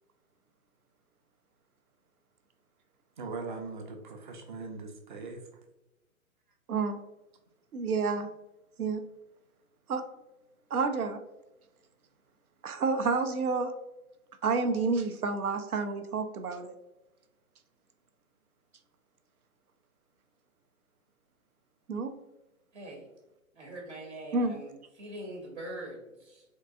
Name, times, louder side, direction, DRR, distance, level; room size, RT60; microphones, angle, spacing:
voice 1, 3.2-5.4, right 3 dB, 35° right, 4 dB, 0.5 m, -40 dB
voice 2, 6.7-7.0 7.7-8.3 8.8-9.0 9.9-10.1 10.7-11.2 12.6-13.7 14.4-16.7 21.9-22.1 24.3-24.6, right 4 dB, 85° right, 8 dB, 0.6 m, -29 dB
voice 3, 22.7-23.1 23.5-26.4, right 1 dB, 55° right, 0 dB, 1.0 m, -43 dB
3.7 x 2.7 x 2.4 m, 0.96 s
figure-of-eight pair, 125°, 42 cm